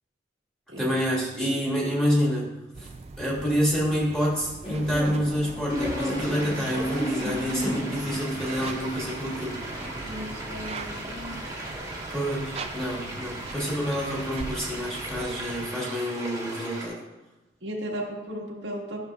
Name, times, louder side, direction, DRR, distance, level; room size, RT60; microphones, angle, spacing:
voice 1, 0.8-2.5 2.8-2.9 3.2-9.6 12.1-17.0, equal, 5° left, -5 dB, 1.8 m, -27 dB
sound 1, 2.7-15.7, right 3 dB, 35° right, 0.4 m, -41 dB
sound 2, 4.6-11.8, left 1 dB, 30° left, 2.2 m, -35 dB
sound 3, 5.7-16.9, right 1 dB, 20° right, 1.4 m, -38 dB
voice 2, 10.0-11.4 17.6-19.1, equal, 90° right, -2 dB, 1.5 m, -35 dB
12.0 x 6.5 x 2.4 m, 1.0 s
head